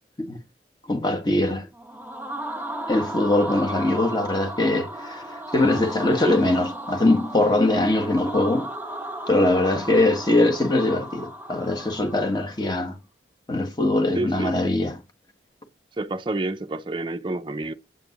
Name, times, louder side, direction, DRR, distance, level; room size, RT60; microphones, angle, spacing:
voice 1, 0.9-1.7 2.9-8.7 9.3-13.0 13.5-15.0, left 2 dB, 25° left, 1.5 m, -22 dB
sound 1, 1.7-12.6, right 1 dB, 10° right, 1.3 m, -35 dB
voice 2, 14.1-14.6 16.0-17.7, right 2 dB, 25° right, 0.5 m, -28 dB
8.9 x 8.1 x 3.0 m
head